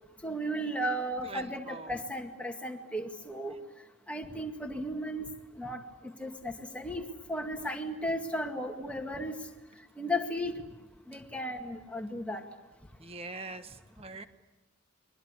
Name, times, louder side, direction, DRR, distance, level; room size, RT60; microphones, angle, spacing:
voice 1, 0.2-3.5 4.1-5.3 5.6-5.8 6.2-9.3 10.0-10.6 11.1-12.4, equal, 5° left, 3 dB, 2.1 m, -35 dB
voice 2, 1.2-2.0 13.0-14.2, right 3 dB, 25° right, 9 dB, 1.3 m, -43 dB
30.0 x 23.0 x 8.3 m, 1.0 s
head